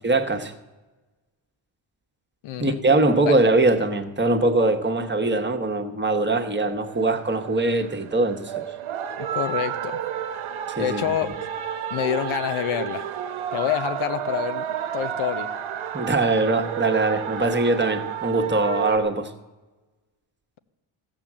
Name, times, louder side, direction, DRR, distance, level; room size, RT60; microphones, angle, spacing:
voice 1, 0.0-0.5 2.6-8.5 10.7-11.0 15.9-19.3, right 2 dB, 25° right, 5 dB, 1.2 m, -22 dB
voice 2, 2.4-2.8 3.3-3.4 9.2-10.0 10.8-11.4 11.9-13.1 13.5-14.7 14.9-15.5, left 10 dB, 85° left, 11 dB, 0.9 m, -27 dB
sound 1, 6.9-19.0, right 9 dB, 80° right, 1.0 m, -31 dB
15.0 x 7.3 x 7.3 m, 1.2 s
cardioid pair, 95°, 48 cm